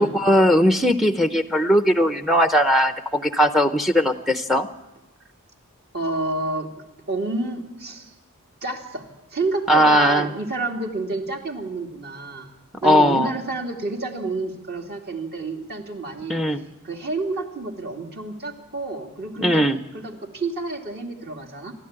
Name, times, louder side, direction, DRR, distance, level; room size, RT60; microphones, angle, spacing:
voice 1, 0.0-4.7 9.7-10.3 12.8-13.3 16.3-16.6 19.4-19.8, equal, ahead, 10 dB, 0.7 m, -18 dB
voice 2, 5.9-6.7 7.1-8.1 8.6-9.1 9.3-12.5 12.8-16.4 16.8-19.6 19.9-21.7, right 2 dB, 45° right, 2 dB, 2.5 m, -29 dB
28.0 x 12.0 x 8.8 m, 1.0 s
head